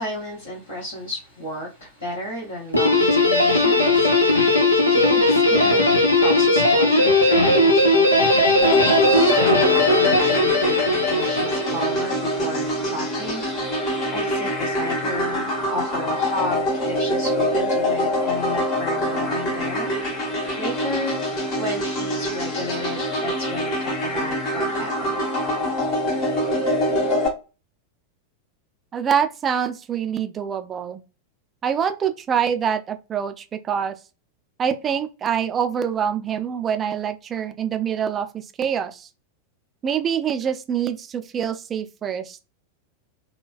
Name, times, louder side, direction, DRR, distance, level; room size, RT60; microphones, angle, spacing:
voice 1, 0.0-19.9 20.5-21.2 21.5-25.2, equal, 65° left, 1.4 m, -33 dB
Guitar, 2.7-12.1, left 2 dB, 80° left, 0.7 m, -18 dB
sound 1, 8.6-27.3, equal, 40° left, 1.2 m, -25 dB
voice 2, 28.9-31.0 31.6-33.9 34.6-39.1 39.8-42.4, right 8 dB, 25° right, 0.5 m, -25 dB
3.9 x 2.2 x 2.5 m
figure-of-eight pair, 90°, 0 cm